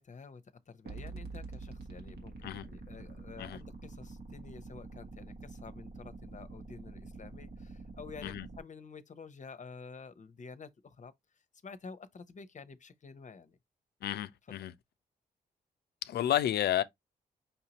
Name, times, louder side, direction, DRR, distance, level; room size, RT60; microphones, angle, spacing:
voice 1, 0.0-11.1 11.6-13.6 14.5-14.6, left 5 dB, 45° left, 0.8 m, -50 dB
sound 1, 0.9-8.6, right 3 dB, 70° right, 1.4 m, -46 dB
voice 2, 14.0-14.7 16.0-16.8, left 11 dB, 75° left, 0.5 m, -31 dB
5.7 x 2.8 x 2.8 m
supercardioid pair, 45°, 17 cm